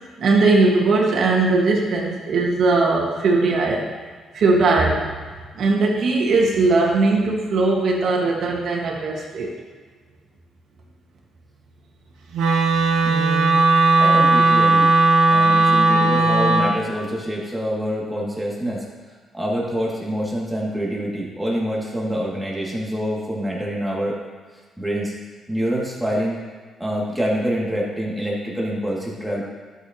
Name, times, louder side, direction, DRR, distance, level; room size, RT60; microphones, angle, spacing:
voice 1, 0.2-3.9 4.3-5.1 5.6-9.5, right 3 dB, 65° right, -1 dB, 1.9 m, -19 dB
Wind instrument woodwind instrument, 12.3-16.7, right 3 dB, 85° right, 1.3 m, -16 dB
voice 2, 13.0-13.6 14.0-14.9 15.3-18.9 19.3-24.2 24.8-25.1 25.5-26.5 26.8-29.4, equal, 5° right, -5 dB, 2.6 m, -26 dB
12.5 x 6.8 x 3.1 m, 1.5 s
cardioid pair, 90°, 0 cm